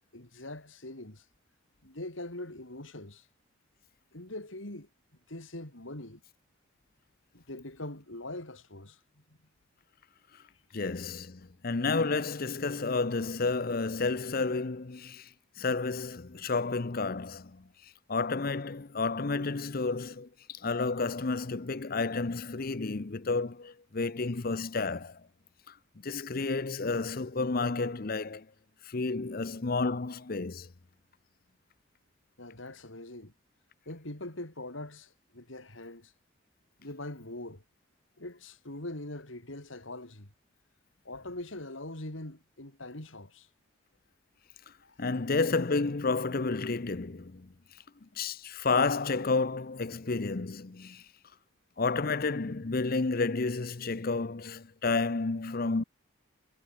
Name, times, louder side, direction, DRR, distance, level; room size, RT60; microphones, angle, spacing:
voice 1, 0.1-1.3 1.8-3.3 4.1-4.9 5.3-6.2 7.3-9.0 32.4-33.3 33.9-36.1 36.8-37.6 38.2-40.3 41.0-43.5 44.8-45.0, left 1 dB, 75° left, 4.0 m, -42 dB
voice 2, 10.7-15.3 15.6-17.7 18.1-25.2 25.7-25.8 26.0-28.5 28.8-30.7 45.0-47.5 48.0-51.0 51.8-55.8, left 3 dB, 45° left, 0.7 m, -31 dB
head